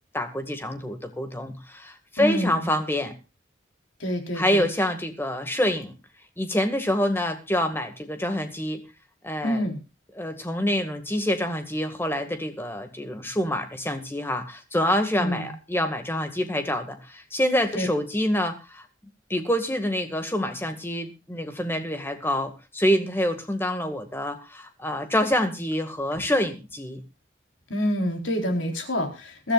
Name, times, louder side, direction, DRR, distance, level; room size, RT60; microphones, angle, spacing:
voice 1, 0.1-3.1 4.4-5.9 6.4-8.8 9.2-9.6 10.2-18.8 19.3-27.0, left 1 dB, 10° left, 7 dB, 1.9 m, -26 dB
voice 2, 2.2-2.7 4.0-4.7 9.4-9.8 15.2-15.5 17.7-17.9 26.1-26.2 27.7-29.5, left 1 dB, 85° left, 4 dB, 4.0 m, -27 dB
22.5 x 13.0 x 2.5 m, 0.29 s
head